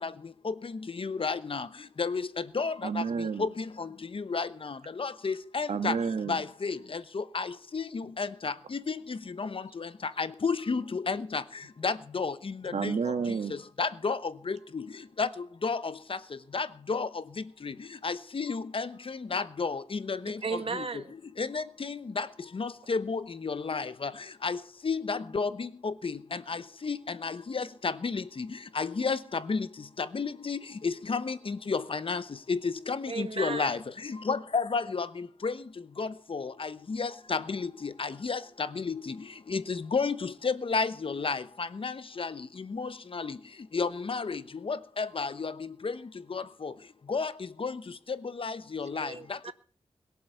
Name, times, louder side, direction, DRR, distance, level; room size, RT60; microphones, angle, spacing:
voice 1, 1.0-1.6 2.0-2.2 2.5-3.0 3.4-3.5 3.8-3.9 4.1-4.7 5.0-5.9 6.3-7.5 7.7-9.5 9.8-9.9 10.2-11.4 11.8-12.3 12.8-12.9 13.8-14.2 14.5-14.8 15.2-15.3 15.6-15.8 16.5-17.1 18.0-18.9 19.3-20.3 21.4-22.3 22.6-24.1 24.4-24.6 24.8-26.1 26.5-26.6 26.8-27.0 27.2-28.2 28.8-29.2 29.5-29.6 30.1-32.2 32.5-33.8 34.3-35.1 35.4-35.5 36.0-36.7 37.0-37.7 38.0-38.4 38.8-39.0 39.5-41.4 41.8-41.9 42.2-42.3 42.8-43.3 43.7-44.4 44.7-45.5 46.3-46.7 47.1-47.3 47.6-47.7 48.4-49.1, left 4 dB, 55° left, 0.9 m, -31 dB
voice 2, 2.8-3.5 5.7-6.4 12.7-13.6, right 5 dB, 80° right, 1.7 m, -30 dB
voice 3, 20.4-21.1 33.1-33.8 49.0-49.5, right 5 dB, 55° right, 1.6 m, -35 dB
21.5 x 7.7 x 6.8 m
wide cardioid pair, 80°, 11 cm